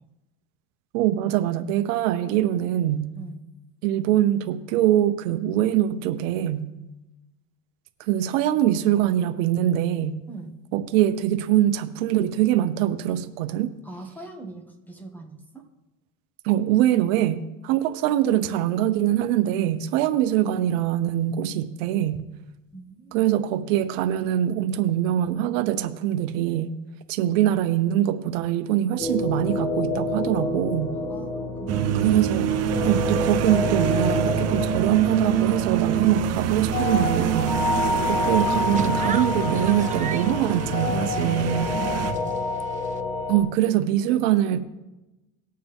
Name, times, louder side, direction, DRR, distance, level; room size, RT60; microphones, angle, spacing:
voice 1, 0.9-3.1 3.8-6.7 8.0-10.2 10.7-13.7 16.4-22.2 23.1-26.7 27.1-31.0 31.9-32.5 32.8-37.5 38.1-41.7 43.3-44.6, right 12 dB, 75° right, 10 dB, 0.9 m, -23 dB
voice 2, 13.8-15.6 22.7-23.2 30.9-32.2 41.2-42.5, right 3 dB, 5° left, 3 dB, 1.8 m, -41 dB
sound 1, 29.0-43.4, left 3 dB, 60° left, 2.4 m, -28 dB
sound 2, 31.7-42.1, right 9 dB, 40° right, 1.0 m, -26 dB
sound 3, 38.1-43.0, right 9 dB, 20° right, 0.4 m, -39 dB
19.5 x 6.7 x 3.6 m, 1.0 s
supercardioid pair, 115°, 39 cm